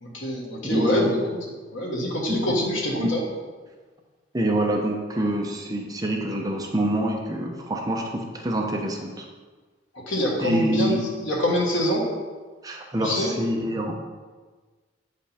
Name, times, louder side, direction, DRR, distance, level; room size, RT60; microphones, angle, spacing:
voice 1, 0.0-1.2 1.7-3.2 10.1-11.0 11.2-12.1 13.0-13.3, equal, 85° left, -2 dB, 1.7 m, -25 dB
voice 2, 0.6-1.1 2.3-2.4 3.0-3.1 4.3-9.2 10.4-11.0 12.6-13.9, right 1 dB, 20° right, 1 dB, 0.8 m, -26 dB
8.2 x 5.2 x 4.3 m, 1.4 s
head